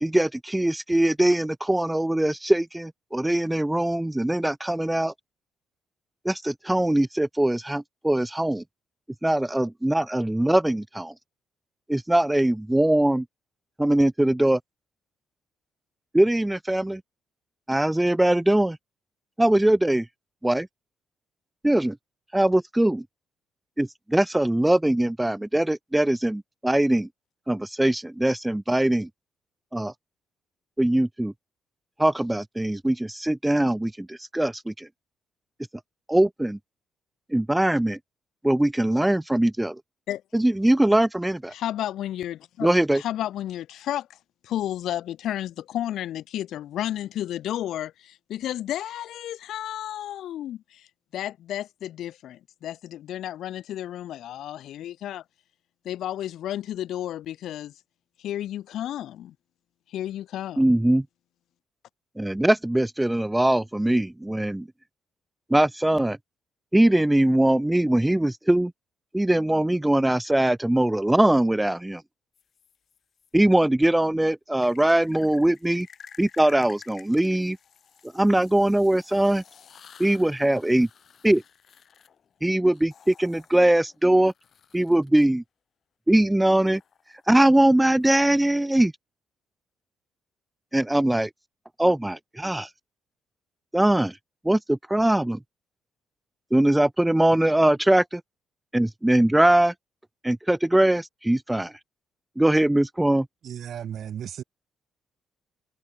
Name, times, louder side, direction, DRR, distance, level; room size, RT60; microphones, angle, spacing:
voice 1, 0.0-5.1 6.2-8.6 9.2-11.1 11.9-13.3 13.8-14.6 16.1-17.0 17.7-18.8 19.4-20.1 20.4-20.7 21.6-22.0 22.3-23.1 23.8-27.1 27.5-29.1 29.7-29.9 30.8-31.3 32.0-34.9 36.1-36.6 37.3-38.0 38.4-39.8 40.3-41.5 42.6-43.0 60.6-61.1 62.2-64.7 65.5-66.2 66.7-68.7 69.1-72.0 73.3-75.9 76.2-77.6 78.1-79.4 80.0-80.9 81.2-81.4 82.4-84.3 84.7-85.4 86.1-86.8 87.3-88.9 90.7-91.3 91.8-92.7 93.7-94.1 94.4-95.4 96.5-98.2 98.7-99.7 100.2-101.7 102.4-103.3, right 1 dB, 10° right, 0.4 m, -21 dB
voice 2, 41.5-42.7 43.0-44.2 44.4-50.9 51.1-55.2 55.8-57.7 58.2-59.3 59.9-60.7, left 12 dB, 75° left, 0.3 m, -32 dB
sound 1, 72.3-73.3 74.6-85.2 86.6-88.4, left 7 dB, 55° left, 2.2 m, -52 dB
voice 3, 103.4-104.4, right 9 dB, 65° right, 2.1 m, -35 dB
cardioid pair, 90°, 0 cm